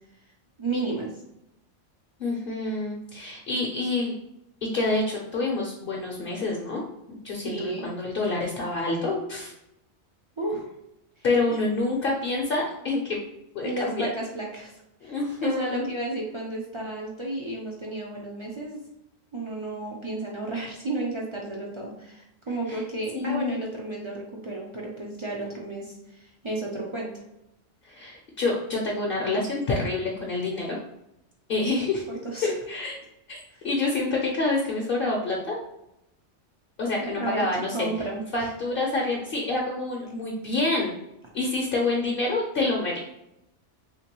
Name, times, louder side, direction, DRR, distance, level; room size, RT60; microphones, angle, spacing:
voice 1, 0.6-1.1 7.4-7.9 10.4-10.6 11.2-11.6 13.6-14.7 15.0-18.8 19.3-27.1 32.2-32.5 33.5-33.6 37.0-37.4 37.7-38.5, right 2 dB, 45° right, -2 dB, 0.3 m, -32 dB
voice 2, 2.2-4.2 4.6-6.8 7.1-9.5 11.2-13.2 13.5-14.1 15.0-15.8 22.7-22.8 23.1-23.5 27.8-30.8 31.5-32.0 32.4-33.0 33.3-33.4 33.6-35.6 36.8-37.9 38.3-41.0 41.3-43.0, left 2 dB, 60° left, -1 dB, 0.7 m, -27 dB
3.3 x 2.9 x 2.9 m, 0.85 s
omnidirectional pair, 1.2 m